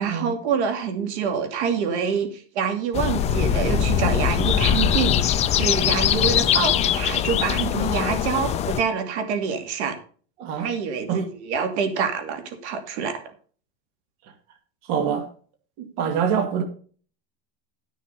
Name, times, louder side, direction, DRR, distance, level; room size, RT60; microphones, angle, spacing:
voice 1, 0.0-9.9 10.6-13.2, right 6 dB, 85° right, 2.7 m, -26 dB
sound 1, 2.9-8.8, left 9 dB, 20° left, 0.5 m, -22 dB
voice 2, 10.4-10.7 11.1-11.2 14.9-15.3 15.8-16.6, right 7 dB, 50° right, 2.2 m, -25 dB
12.5 x 6.6 x 5.5 m
supercardioid pair, 160°, 33 cm